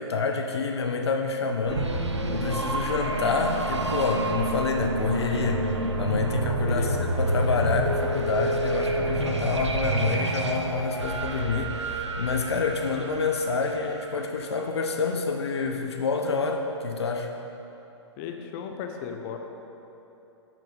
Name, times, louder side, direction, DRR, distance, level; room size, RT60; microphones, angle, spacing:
voice 1, 0.0-1.9 2.3-5.6 6.0-17.3, left 4 dB, 65° left, 4 dB, 0.7 m, -28 dB
sound 1, 1.7-14.4, right 1 dB, 80° right, 0.9 m, -28 dB
voice 2, 6.6-7.1 18.2-19.4, left 7 dB, 35° left, 4 dB, 0.8 m, -36 dB
10.5 x 5.6 x 5.4 m, 3.0 s
figure-of-eight pair, 110°, 15 cm